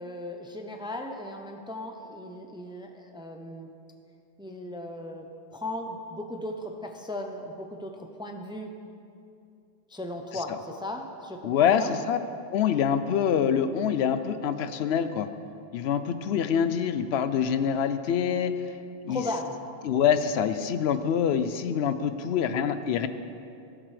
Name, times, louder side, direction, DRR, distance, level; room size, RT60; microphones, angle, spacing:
voice 1, 0.0-3.7 4.4-8.7 9.9-11.9 19.1-19.5, left 1 dB, 5° right, 3 dB, 0.5 m, -37 dB
voice 2, 11.4-12.2 12.5-15.3 15.7-18.7 19.0-19.2 19.8-23.1, left 8 dB, 85° left, 11 dB, 0.8 m, -25 dB
16.5 x 7.4 x 3.3 m, 2.5 s
omnidirectional pair, 1.0 m